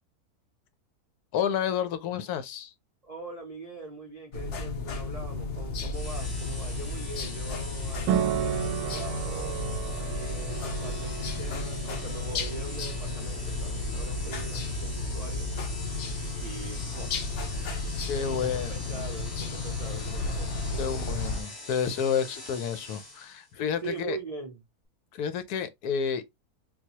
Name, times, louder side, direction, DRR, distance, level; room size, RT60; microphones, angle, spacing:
voice 1, 1.3-2.7 18.1-18.7 20.8-24.2 25.1-26.2, left 7 dB, 80° left, 1.2 m, -30 dB
voice 2, 3.0-15.5 16.4-17.2 18.1-21.2 23.8-24.6, right 3 dB, 55° right, 0.4 m, -42 dB
sound 1, 4.3-21.4, left 3 dB, 60° left, 0.9 m, -33 dB
sound 2, 5.9-23.5, left 2 dB, 20° left, 0.6 m, -43 dB
sound 3, 8.1-15.4, right 9 dB, 90° right, 1.1 m, -34 dB
3.9 x 2.3 x 2.8 m
omnidirectional pair, 1.6 m